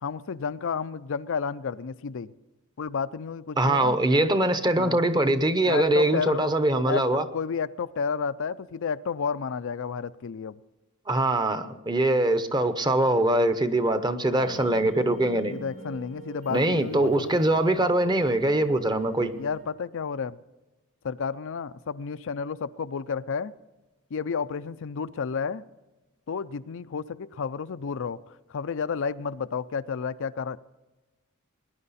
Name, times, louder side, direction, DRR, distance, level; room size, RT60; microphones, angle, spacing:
voice 1, 0.0-2.3 2.8-4.0 4.7-5.0 5.6-6.6 6.8-10.5 14.4-14.6 15.5-17.4 19.3-20.4 21.0-23.5 24.1-25.6 26.3-28.2 28.5-30.6, left 6 dB, 60° left, 0.5 m, -31 dB
voice 2, 3.6-7.2 11.1-15.5 16.5-19.3, right 1 dB, 20° right, 0.9 m, -23 dB
sound 1, 14.4-19.6, right 2 dB, 65° right, 2.6 m, -44 dB
20.5 x 10.5 x 4.2 m
head